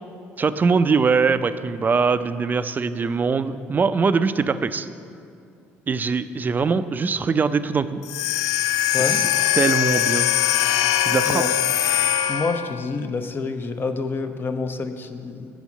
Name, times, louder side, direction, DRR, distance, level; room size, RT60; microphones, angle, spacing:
voice 1, 0.4-4.9 5.9-8.0 9.0-9.3 9.5-10.3 11.0-11.4, right 5 dB, 30° right, 12 dB, 0.4 m, -22 dB
sound 1, 8.0-12.8, left 12 dB, 80° left, 0.4 m, -21 dB
voice 2, 12.3-15.5, left 4 dB, 40° left, 7 dB, 0.8 m, -27 dB
8.2 x 6.1 x 7.1 m, 2.4 s
supercardioid pair, 70°, 6 cm